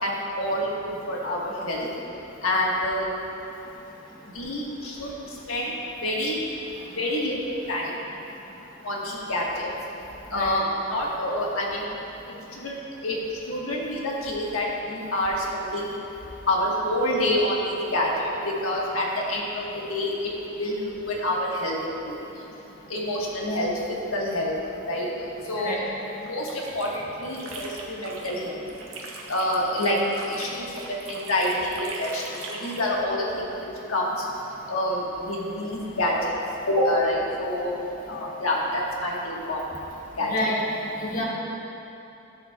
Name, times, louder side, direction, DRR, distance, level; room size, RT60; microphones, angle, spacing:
voice 1, 0.0-1.9 2.4-3.2 4.3-6.4 6.9-7.9 8.8-9.7 10.3-11.9 12.5-15.9 16.5-20.3 20.6-22.2 22.9-24.6 24.9-25.1 25.4-25.7 26.2-28.6 29.3-30.0 30.3-33.6 33.9-34.3 34.7-36.3 36.7-37.8 38.1-39.6 40.1-40.3, left 1 dB, 85° left, -3 dB, 1.5 m, -27 dB
sound 1, 26.2-28.4 28.7-32.9, right 3 dB, 85° right, 1.1 m, -40 dB
voice 2, 40.2-40.6 41.0-41.2, left 1 dB, 45° left, -3 dB, 1.3 m, -28 dB
13.5 x 7.3 x 2.3 m, 3.0 s
head